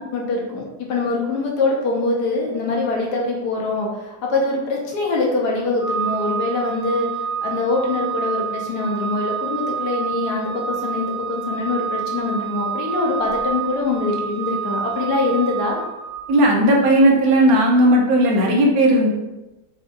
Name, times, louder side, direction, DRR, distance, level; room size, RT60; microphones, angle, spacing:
voice 1, 0.0-7.1 7.4-15.8, left 3 dB, 90° left, -2 dB, 1.4 m, -23 dB
Organ, 5.8-16.5, right 7 dB, 60° left, 1.2 m, -28 dB
voice 2, 16.3-19.1, right 1 dB, 70° right, -2 dB, 1.2 m, -15 dB
5.0 x 2.5 x 2.4 m, 1.0 s
omnidirectional pair, 1.7 m